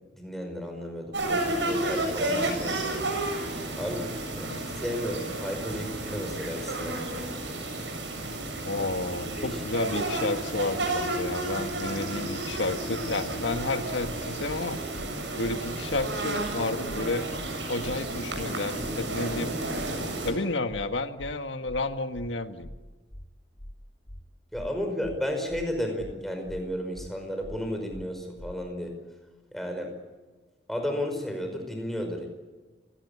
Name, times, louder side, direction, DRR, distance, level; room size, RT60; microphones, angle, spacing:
voice 1, 0.1-3.1 3.7-7.1 8.8-8.9 9.3-9.9 24.5-29.0 29.5-29.9 30.7-32.3, equal, ahead, 3 dB, 5.2 m, -33 dB
sound 1, 1.1-20.3, right 2 dB, 75° right, 7.8 m, -32 dB
voice 2, 8.6-14.8 15.4-17.2 17.7-19.5 20.2-22.7, left 2 dB, 85° left, 8 dB, 1.7 m, -31 dB
sound 2, 14.5-14.6 14.9-15.1 15.4-15.6 15.9-16.1 16.4-16.5 16.9-17.0 17.3-17.5 17.8-18.0 18.3-18.5 18.8-18.9 19.3-19.4 19.7-19.9 20.2-20.4 20.7-20.9 21.2-21.3 21.7-21.8 22.1-22.3 22.6-22.8 23.1-23.3 23.6-23.7 24.1-24.2 24.5-24.7 25.0-25.2 25.5-25.7 26.0-26.1 26.5-26.6 26.9-27.1 27.4-27.6 27.9-28.1 28.4-28.5, equal, 40° left, 2.2 m, -43 dB
29.5 x 18.0 x 8.7 m, 1.3 s
head